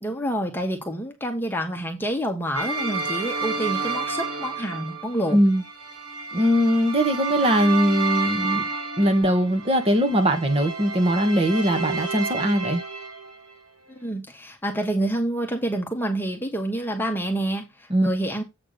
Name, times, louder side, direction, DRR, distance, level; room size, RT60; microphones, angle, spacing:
voice 1, 0.0-5.4 14.0-17.7 18.0-18.4, right 1 dB, 10° left, 1.4 m, -27 dB
sound 1, 2.5-13.5, right 4 dB, 85° right, 3.0 m, -30 dB
voice 2, 5.3-5.6 6.3-8.7 9.0-12.8 17.9-18.1, equal, 30° right, 1.7 m, -21 dB
8.0 x 3.5 x 6.6 m
head